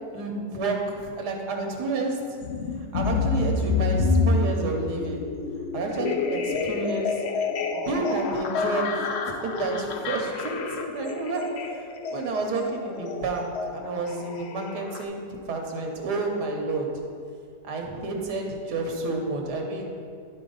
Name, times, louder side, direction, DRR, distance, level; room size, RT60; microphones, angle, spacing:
voice 1, 0.1-2.4 2.9-5.2 5.7-7.2 7.7-16.9 17.6-19.9, right 3 dB, 85° right, 1 dB, 1.6 m, -30 dB
sound 1, 2.4-15.0, left 4 dB, 75° left, 0.6 m, -28 dB
11.5 x 4.3 x 3.9 m, 2.3 s
omnidirectional pair, 1.7 m